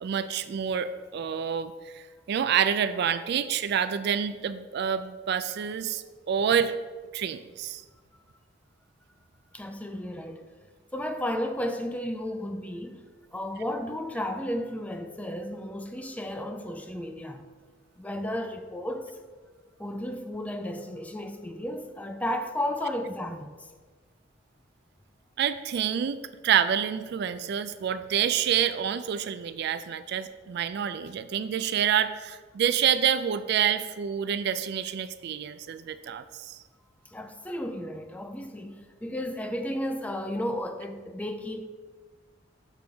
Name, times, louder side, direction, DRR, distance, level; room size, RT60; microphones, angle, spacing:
voice 1, 0.0-6.8 7.1-7.8 25.4-36.6, right 8 dB, 60° right, 0.3 m, -28 dB
voice 2, 9.5-10.4 10.9-13.0 13.3-17.4 18.0-19.1 19.8-23.6 37.1-41.6, left 1 dB, 10° left, 0.4 m, -33 dB
6.8 x 3.4 x 6.1 m
head